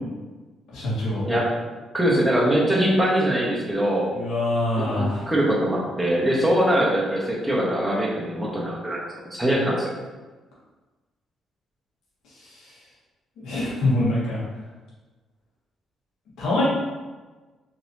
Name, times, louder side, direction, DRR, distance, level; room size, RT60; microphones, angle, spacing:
voice 1, 0.7-1.3 4.1-5.3 12.3-12.8 13.4-14.4 16.4-16.6, left 1 dB, 85° left, -7 dB, 1.3 m, -25 dB
voice 2, 1.9-4.1 4.8-9.0 9.3-9.9, right 1 dB, ahead, -5 dB, 1.1 m, -22 dB
4.0 x 2.9 x 2.7 m, 1.3 s
cardioid pair, 90°, 0 cm